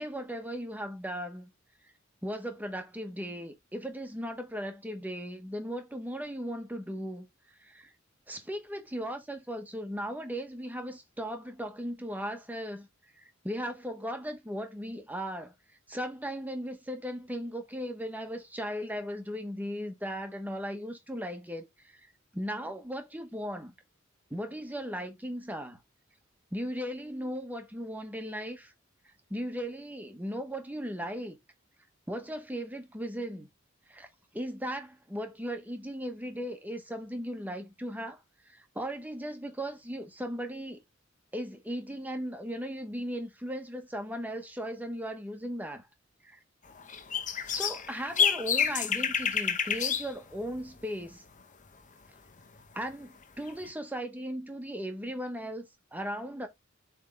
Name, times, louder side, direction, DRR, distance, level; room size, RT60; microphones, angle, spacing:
voice 1, 0.0-1.5 2.2-7.2 7.6-7.9 8.3-12.9 13.2-15.5 15.9-22.1 22.3-23.7 24.3-25.8 26.5-28.7 29.3-31.4 32.1-33.5 33.9-34.1 34.3-40.8 41.3-45.9 46.2-46.4 47.4-51.2 52.7-56.5, equal, 10° right, 1.1 m, -37 dB
sound 1, 46.8-50.1 50.4-50.6 53.5-53.7, left 7 dB, 40° left, 0.8 m, -29 dB
7.4 x 3.5 x 3.7 m
head